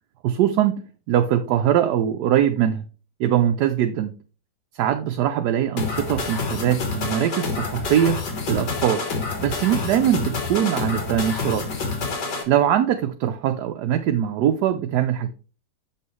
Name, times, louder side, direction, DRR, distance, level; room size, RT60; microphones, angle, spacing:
voice 1, 0.2-0.8 1.1-2.8 3.2-4.1 4.7-8.2 8.5-9.0 9.4-11.7 12.5-15.3, right 10 dB, 75° right, 1.1 m, -22 dB
sound 1, 5.8-12.4, left 4 dB, 70° left, 2.1 m, -28 dB
7.0 x 5.6 x 3.1 m
omnidirectional pair, 2.0 m